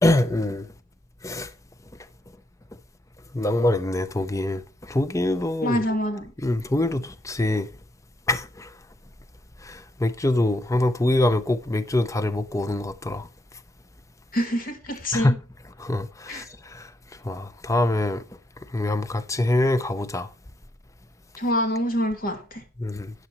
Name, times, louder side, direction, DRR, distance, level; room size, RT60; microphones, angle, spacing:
voice 1, 0.0-0.7 1.2-1.5 3.3-4.6 4.9-5.8 6.4-7.7 8.3-8.7 9.6-13.3 15.1-15.4 15.8-16.9 17.2-18.2 18.7-20.3 22.8-23.1, left 1 dB, 15° left, 0.5 m, -24 dB
voice 2, 5.6-6.3 14.3-15.3 16.3-16.4 21.4-22.6, equal, 40° left, 2.4 m, -26 dB
13.0 x 9.6 x 2.9 m
head